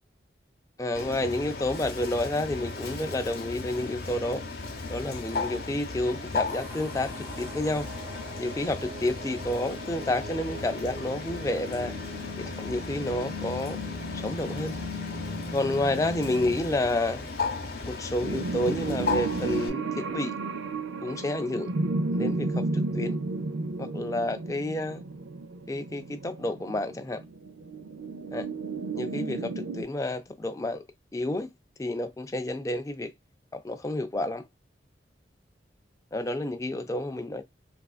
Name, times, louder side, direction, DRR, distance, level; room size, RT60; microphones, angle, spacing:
voice 1, 0.8-4.4 4.9-7.9 8.4-11.9 12.4-13.8 14.1-14.8 15.5-17.3 17.9-20.3 21.0-21.7 22.1-23.2 23.8-25.0 25.7-27.2 28.3-28.5 29.0-30.8 31.1-31.5 31.8-33.1 33.5-34.4 36.1-37.4, left 1 dB, 15° left, 0.3 m, -30 dB
Bird, 0.9-19.7, left 3 dB, 55° left, 0.8 m, -36 dB
sound 1, 6.5-16.6, left 2 dB, 30° right, 0.7 m, -40 dB
sound 2, 18.2-29.8, right 3 dB, 90° right, 0.5 m, -32 dB
3.3 x 2.5 x 2.3 m
head